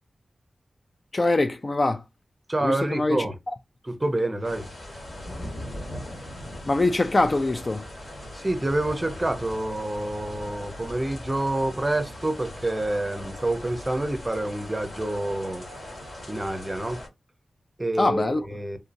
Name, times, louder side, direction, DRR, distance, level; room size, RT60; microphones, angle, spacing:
voice 1, 1.1-2.0 2.6-3.5 6.7-7.9 18.0-18.4, left 2 dB, 35° left, 0.3 m, -23 dB
voice 2, 2.5-3.3 3.8-4.7 8.3-15.6 16.3-17.0 17.8-18.8, right 1 dB, 20° right, 0.7 m, -27 dB
sound 1, 4.4-17.1, left 1 dB, 55° left, 2.0 m, -39 dB
3.7 x 2.7 x 2.6 m
wide cardioid pair, 120°, 0 cm